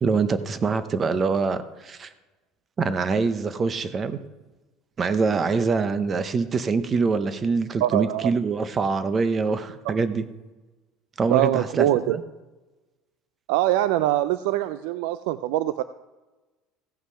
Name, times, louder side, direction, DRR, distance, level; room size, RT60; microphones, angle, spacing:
voice 1, 0.0-2.1 2.8-4.2 5.0-10.2 11.2-12.2, right 4 dB, 20° right, 12 dB, 0.7 m, -24 dB
voice 2, 7.8-8.3 9.9-10.0 11.3-12.2 13.5-15.8, right 14 dB, 80° right, 13 dB, 0.4 m, -23 dB
16.0 x 5.7 x 5.6 m, 1.2 s
cardioid pair, 165°, 0 cm